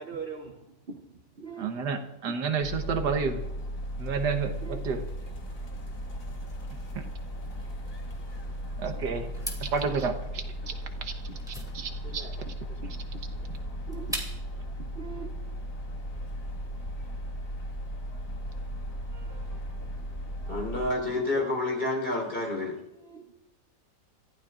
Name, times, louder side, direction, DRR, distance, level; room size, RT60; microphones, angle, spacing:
voice 1, 0.0-1.7 4.6-4.8 5.8-5.9 8.9-9.3 11.3-11.4 11.8-12.3 12.7-13.5 13.9-14.5 14.8-15.4 18.7-18.8 19.5-20.8 22.4-23.3, right 5 dB, 40° right, 1.0 m, -44 dB
voice 2, 1.6-3.4 4.0-5.0 6.7-7.1 8.8-9.3 9.6-10.7 11.0-11.1 11.5-12.3 13.5-13.6 19.1-19.6 20.4-20.6, right 5 dB, 80° right, 1.7 m, -31 dB
sound 1, 2.6-20.9, equal, 50° left, 2.2 m, -36 dB
sound 2, 9.3-14.6, equal, ahead, 2.5 m, -41 dB
voice 3, 20.5-22.8, left 2 dB, 30° left, 4.3 m, -29 dB
28.5 x 14.5 x 2.5 m
omnidirectional pair, 1.8 m